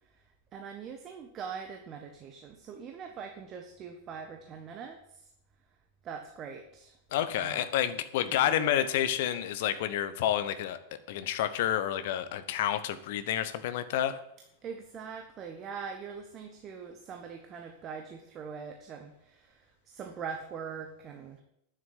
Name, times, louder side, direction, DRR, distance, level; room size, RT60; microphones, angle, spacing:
voice 1, 0.5-5.3 6.0-7.0 7.4-7.7 8.5-8.9 14.6-21.4, right 6 dB, 30° right, 3 dB, 1.5 m, -42 dB
voice 2, 7.1-14.2, left 11 dB, 50° left, 12 dB, 1.2 m, -29 dB
9.9 x 7.7 x 9.6 m, 0.78 s
figure-of-eight pair, 90°, 0 cm